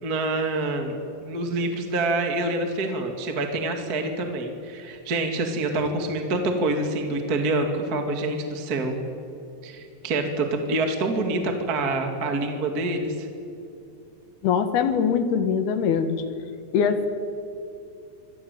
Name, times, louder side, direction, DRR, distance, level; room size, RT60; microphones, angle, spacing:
voice 1, 0.0-0.9 1.2-9.0 9.6-13.3, right 2 dB, 30° right, 4 dB, 1.8 m, -26 dB
voice 2, 14.4-16.2 16.7-17.1, left 6 dB, 65° left, 9 dB, 3.2 m, -22 dB
26.0 x 18.0 x 9.3 m, 2.7 s
omnidirectional pair, 5.1 m